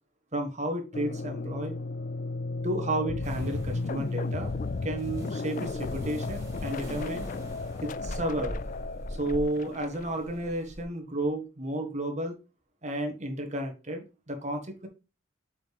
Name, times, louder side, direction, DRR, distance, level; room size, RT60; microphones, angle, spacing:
voice 1, 0.3-1.7 2.6-7.3 7.8-8.6 9.1-12.4 12.8-14.9, right 1 dB, 35° right, 4 dB, 1.4 m, -32 dB
sound 1, 0.9-10.5, left 3 dB, 40° left, 0.3 m, -34 dB
sound 2, 3.2-10.8, equal, 15° right, 2.1 m, -42 dB
7.3 x 4.9 x 3.4 m, 0.30 s
head